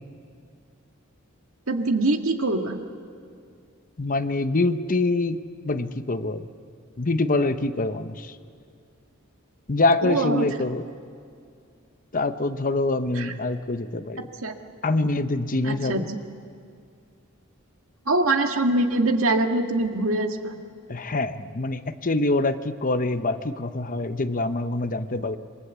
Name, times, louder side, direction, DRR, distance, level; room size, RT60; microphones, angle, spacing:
voice 1, 1.7-2.8 10.0-10.5 13.2-13.3 14.4-14.6 15.6-16.0 18.1-20.6, right 2 dB, 80° right, 4 dB, 1.9 m, -23 dB
voice 2, 4.0-6.5 7.0-8.4 9.7-10.9 12.1-14.3 14.8-16.1 20.9-25.4, left 2 dB, 40° left, 9 dB, 0.9 m, -25 dB
27.5 x 22.5 x 8.3 m, 2.3 s
head